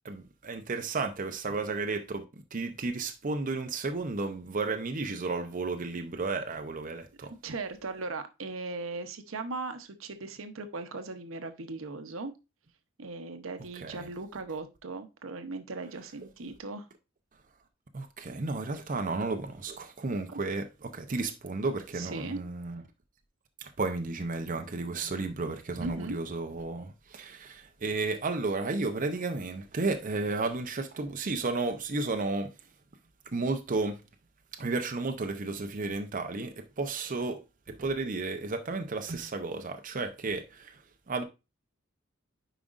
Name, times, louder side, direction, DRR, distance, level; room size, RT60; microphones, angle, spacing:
voice 1, 0.0-2.2 2.5-7.3 13.8-14.1 17.9-22.8 23.6-32.5 33.3-34.0 34.6-37.4 37.7-40.7 41.1-41.2, right 3 dB, 40° right, 0.7 m, -33 dB
voice 2, 7.2-12.3 13.0-16.9 20.3-20.4 21.9-22.4 25.8-26.2, right 3 dB, 80° right, 0.8 m, -38 dB
9.1 x 4.9 x 2.5 m
head